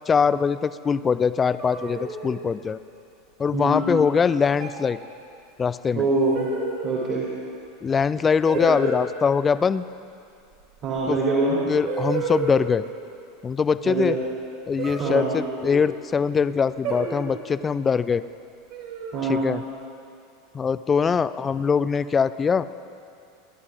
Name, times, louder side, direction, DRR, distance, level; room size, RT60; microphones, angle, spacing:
voice 1, 0.1-2.8 3.4-5.0 5.6-6.1 7.8-9.8 11.1-11.2 11.7-12.8 13.4-14.2 14.7-18.2 19.3-19.6 20.5-22.7, left 6 dB, 25° left, 15 dB, 0.4 m, -22 dB
sound 1, 1.6-2.5 3.7-4.1 4.6-4.9 6.3-7.0 8.5-9.1 11.0-11.1 11.9-12.8 14.8-15.9 16.8-17.5 18.7-19.3, right 5 dB, 60° right, 2.8 m, -31 dB
voice 2, 3.5-3.9 5.9-6.5 6.8-7.3 10.8-11.6 13.8-14.2 15.0-15.3 19.1-19.5, right 2 dB, 40° right, -6 dB, 2.7 m, -24 dB
27.5 x 11.0 x 2.5 m, 2.5 s
figure-of-eight pair, 80°, 0 cm